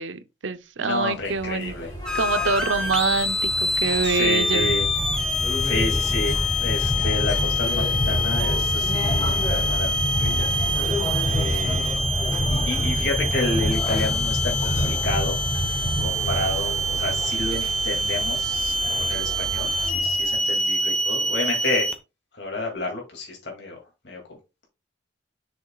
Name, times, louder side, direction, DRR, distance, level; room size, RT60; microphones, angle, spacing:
voice 1, 0.0-1.7 2.1-4.8, right 4 dB, 80° right, 0.7 m, -25 dB
voice 2, 0.8-1.9 2.8-2.9 4.0-4.8 5.6-10.5 11.2-12.0 12.5-15.4 16.0-21.9 22.3-23.8 24.0-24.2, left 2 dB, 65° left, 2.4 m, -30 dB
sound 1, 1.2-20.4, equal, 20° left, 3.5 m, -28 dB
sound 2, 2.1-22.0, left 1 dB, 5° left, 0.9 m, -26 dB
7.2 x 6.3 x 2.3 m
head